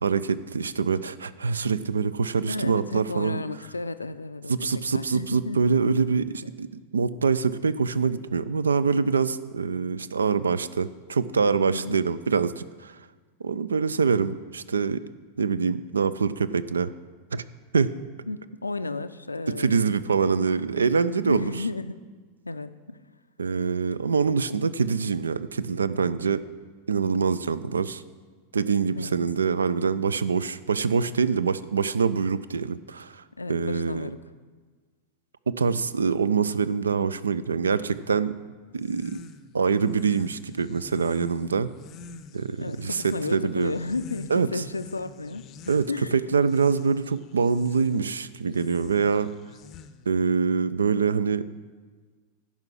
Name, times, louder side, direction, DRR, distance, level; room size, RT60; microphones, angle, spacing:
voice 1, 0.0-3.4 4.5-6.7 6.9-13.0 13.4-15.0 15.4-16.9 17.3-17.4 17.7-17.9 19.5-21.5 23.4-26.4 26.9-28.0 28.5-33.2 33.5-34.1 35.5-38.4 38.7-39.2 39.5-41.7 42.3-43.7 44.3-44.6 45.7-49.3 50.1-51.4, right 5 dB, 70° right, 16 dB, 0.3 m, -25 dB
voice 2, 2.5-5.8 11.7-12.0 18.3-20.0 21.2-22.0 22.4-23.0 28.9-29.2 33.4-34.2 42.6-45.4 45.9-46.2, left 3 dB, 80° left, 12 dB, 0.4 m, -33 dB
sound 1, 38.7-50.2, left 6 dB, 30° left, 0.5 m, -48 dB
10.5 x 5.6 x 7.6 m, 1.5 s
figure-of-eight pair, 90°, 0 cm